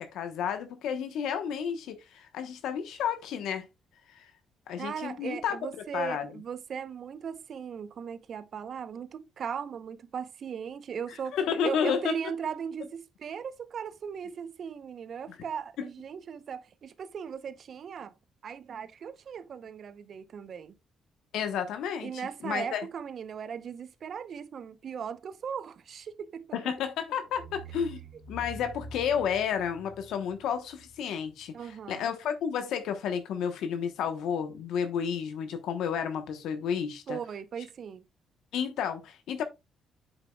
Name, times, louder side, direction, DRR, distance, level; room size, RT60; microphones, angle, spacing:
voice 1, 0.0-3.6 4.1-4.3 4.7-5.6 5.9-6.3 11.3-12.1 15.8-15.9 21.3-22.9 26.5-28.0 28.3-37.2 38.5-39.4, left 7 dB, 85° left, 1.0 m, -31 dB
voice 2, 4.8-11.4 11.6-18.1 18.4-20.7 22.0-26.6 31.5-32.1 37.1-38.0, right 7 dB, 55° right, 0.8 m, -38 dB
sound 1, 26.7-26.9 27.3-31.9, right 2 dB, 65° left, 3.2 m, -46 dB
8.2 x 6.9 x 2.3 m
cardioid pair, 90°, 0 cm